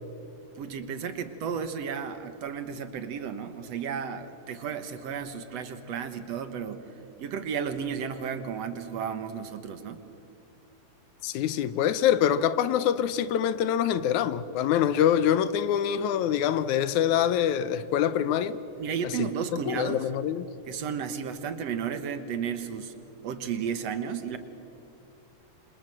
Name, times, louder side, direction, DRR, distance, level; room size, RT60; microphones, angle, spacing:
voice 1, 0.6-6.9 7.2-10.0 18.8-20.1 20.7-22.9 23.2-24.4, right 7 dB, 60° right, 2.2 m, -33 dB
voice 2, 11.2-18.6 19.2-19.3 19.7-20.5, left 9 dB, 75° left, 2.2 m, -25 dB
27.0 x 26.5 x 7.8 m
omnidirectional pair, 3.5 m